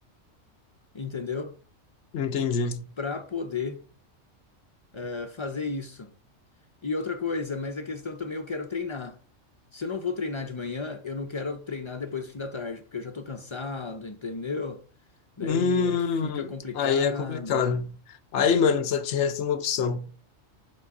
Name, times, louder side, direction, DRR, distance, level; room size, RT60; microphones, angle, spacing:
voice 1, 0.9-1.5 3.0-3.8 4.9-6.1 6.8-9.2 9.7-14.8 15.4-17.7, left 4 dB, 50° left, 0.3 m, -33 dB
voice 2, 2.1-2.8 15.4-16.5 16.7-17.9 18.3-20.1, left 6 dB, 65° left, 0.9 m, -25 dB
5.3 x 3.6 x 5.3 m
omnidirectional pair, 1.4 m